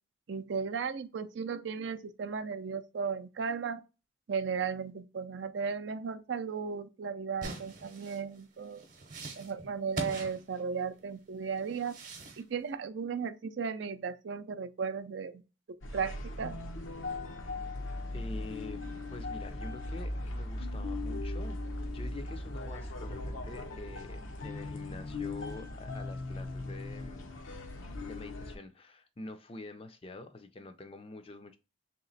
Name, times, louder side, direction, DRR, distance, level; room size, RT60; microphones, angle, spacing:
voice 1, 0.3-3.8 4.3-8.8 9.4-12.0 12.4-15.4 15.9-16.5, right 6 dB, 65° right, 0.4 m, -35 dB
sound 1, 7.4-11.0 11.6-12.4, right 2 dB, 40° right, 0.8 m, -43 dB
sound 2, 15.8-28.5, left 2 dB, 90° left, 0.8 m, -38 dB
voice 2, 18.1-27.3 28.0-31.6, left 2 dB, 30° left, 0.4 m, -47 dB
3.2 x 3.0 x 3.9 m
head